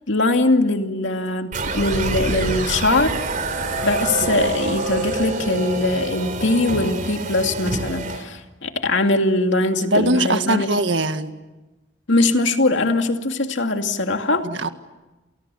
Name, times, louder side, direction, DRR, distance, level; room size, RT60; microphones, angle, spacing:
voice 1, 0.1-3.1 3.8-10.7 12.1-14.5, left 2 dB, 70° left, 5 dB, 2.5 m, -21 dB
sound 1, 1.5-8.2, right 2 dB, 45° right, 4.0 m, -26 dB
voice 2, 9.9-11.3 14.4-14.7, right 1 dB, 70° right, 8 dB, 1.9 m, -21 dB
29.5 x 28.5 x 7.1 m, 1.1 s
head